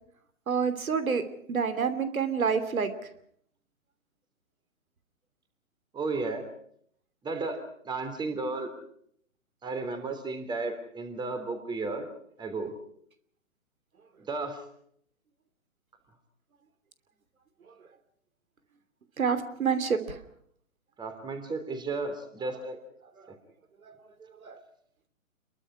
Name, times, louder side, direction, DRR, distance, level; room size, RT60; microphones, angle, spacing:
voice 1, 0.5-1.2 1.5-2.9 19.2-20.2 22.4-22.5 23.9-24.0 24.4-24.5, right 6 dB, 75° right, 11 dB, 3.1 m, -28 dB
voice 2, 5.9-6.5 7.2-8.7 9.6-12.1 12.4-12.7 14.3-14.6 21.0-22.8 23.3-23.4, right 3 dB, 10° right, 7 dB, 3.2 m, -33 dB
28.0 x 22.5 x 4.9 m, 0.66 s
hypercardioid pair, 140°, 42 cm